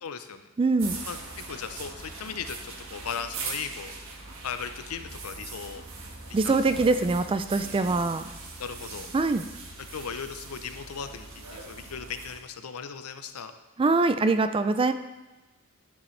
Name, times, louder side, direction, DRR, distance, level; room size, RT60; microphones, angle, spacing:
voice 1, 0.0-0.5 1.1-3.9 4.4-5.8 6.3-6.6 7.7-7.9 8.6-9.1 9.9-13.5, left 6 dB, 75° left, 9 dB, 0.6 m, -37 dB
voice 2, 0.6-1.0 6.3-8.3 9.1-9.4 13.8-14.9, right 3 dB, 25° right, 10 dB, 0.3 m, -23 dB
sound 1, 0.8-12.4, right 3 dB, 65° right, 1.4 m, -41 dB
10.5 x 7.0 x 3.2 m, 1.1 s
head